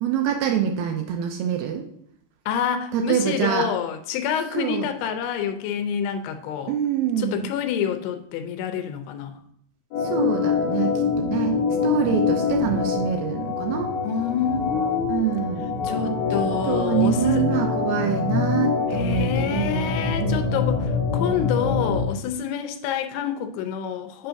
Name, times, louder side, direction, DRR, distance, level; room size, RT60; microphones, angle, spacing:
voice 1, 0.0-1.8 2.9-3.7 4.5-4.9 6.7-7.5 10.0-13.9 15.1-15.8 16.7-20.6, right 9 dB, 80° right, 2.3 m, -25 dB
voice 2, 2.5-6.7 7.2-9.4 14.0-15.3 15.8-17.5 18.9-24.3, left 8 dB, 85° left, 2.7 m, -27 dB
Organ, 9.9-22.1, left 5 dB, 70° left, 1.6 m, -25 dB
7.5 x 2.6 x 5.7 m
omnidirectional pair, 4.7 m